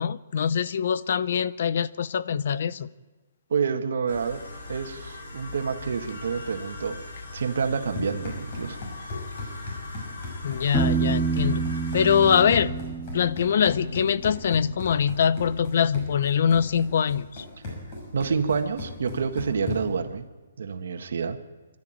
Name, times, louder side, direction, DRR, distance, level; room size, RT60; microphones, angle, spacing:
voice 1, 0.0-2.9 10.4-11.7 11.9-12.7 13.1-17.4, left 7 dB, 45° left, 17 dB, 0.7 m, -23 dB
voice 2, 3.5-4.4 4.7-7.0 7.3-8.8 17.6-17.7 18.1-20.3 20.6-21.4, right 5 dB, 60° right, 7 dB, 1.7 m, -28 dB
sound 1, 4.1-12.4, left 2 dB, 60° left, 7.8 m, -40 dB
Run, 7.6-20.1, left 2 dB, 30° left, 6.1 m, -37 dB
Piano, 10.7-14.4, right 5 dB, 5° right, 0.7 m, -28 dB
24.5 x 13.0 x 9.1 m, 1.2 s
hypercardioid pair, 180°, 0 cm